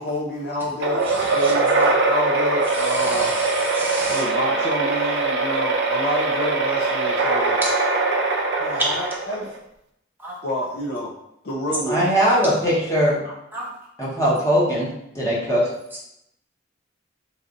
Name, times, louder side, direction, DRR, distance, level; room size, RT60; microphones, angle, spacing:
voice 1, 0.0-3.3 4.1-7.6 8.6-9.5 10.4-11.1 11.4-12.1 13.2-13.3, left 1 dB, 60° left, -3 dB, 0.6 m, -28 dB
sound 1, 0.8-9.6, right 3 dB, 65° right, 0.5 m, -22 dB
voice 2, 1.0-1.6 2.1-2.2 2.7-4.2 7.6-7.7 10.2-10.4 12.4-12.5 13.5-13.7, right 1 dB, 10° right, -5 dB, 0.9 m, -32 dB
voice 3, 11.9-13.2 14.0-15.6, equal, 15° left, -6 dB, 1.0 m, -20 dB
3.2 x 2.6 x 3.7 m, 0.79 s
head